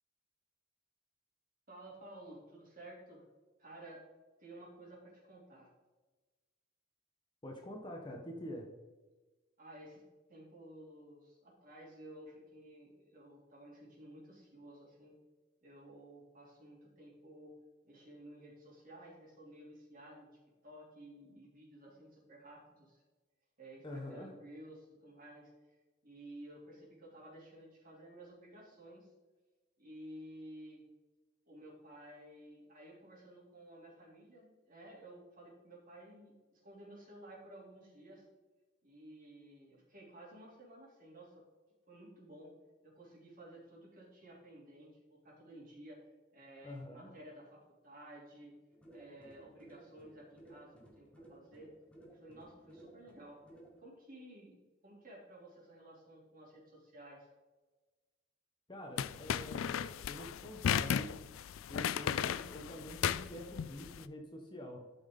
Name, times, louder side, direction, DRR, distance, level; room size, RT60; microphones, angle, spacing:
voice 1, 1.7-3.2 3.6-4.0 4.4-5.7 9.6-10.0 10.3-15.1 15.6-17.5 17.8-20.3 20.6-23.0 23.6-25.8 26.0-29.1 29.8-30.8 31.5-38.2 38.8-41.4 41.9-42.5 42.8-48.5 48.9-51.7 52.1-53.4 53.8-57.3, right 1 dB, 45° right, -4 dB, 3.0 m, -54 dB
voice 2, 7.4-8.7 23.8-24.3 46.6-47.1 58.7-61.1 61.7-64.9, left 1 dB, 25° left, 1 dB, 1.0 m, -46 dB
sound 1, 48.7-53.8, right 1 dB, 5° left, 1.7 m, -58 dB
sound 2, 59.0-64.0, left 8 dB, 85° left, 0.3 m, -35 dB
13.0 x 5.6 x 3.8 m, 1.2 s
head